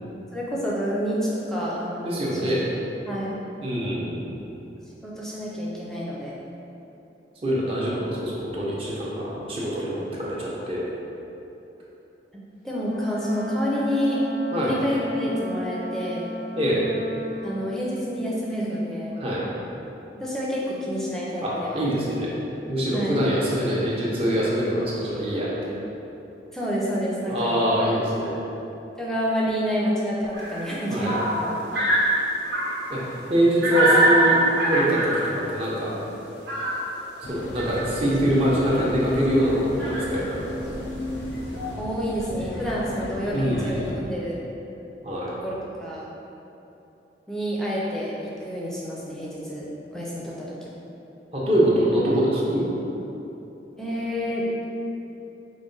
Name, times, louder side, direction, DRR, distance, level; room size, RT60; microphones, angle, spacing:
voice 1, 0.3-2.5 3.1-3.3 5.0-6.4 12.6-14.2 14.6-16.2 17.4-19.2 20.1-21.9 22.9-23.2 26.5-27.5 29.0-31.6 41.8-44.3 45.4-45.5 45.8-46.0 47.3-49.6 49.9-50.7 53.8-54.6, equal, 5° left, -6 dB, 0.5 m, -28 dB
voice 2, 2.0-2.6 3.6-4.2 7.4-10.9 14.5-14.8 16.6-16.8 19.2-19.5 21.4-22.3 22.7-25.8 27.3-28.4 30.9-31.2 32.9-33.0 33.3-35.9 37.3-40.4 43.3-43.8 45.0-45.3 51.3-52.6, equal, 35° right, -6 dB, 0.7 m, -24 dB
Wind instrument woodwind instrument, 12.8-17.6, left 1 dB, 65° right, 1.0 m, -35 dB
sound 1, 30.3-33.0 33.6-35.5 36.3-37.1 37.6-37.9 38.7-38.8 39.1-39.2 39.8-40.2 41.1-41.2 41.6-41.7, right 1 dB, 90° right, 1.1 m, -23 dB
sound 2, 37.2-44.0, left 1 dB, 85° left, 0.5 m, -34 dB
4.8 x 2.2 x 3.9 m, 3.0 s
head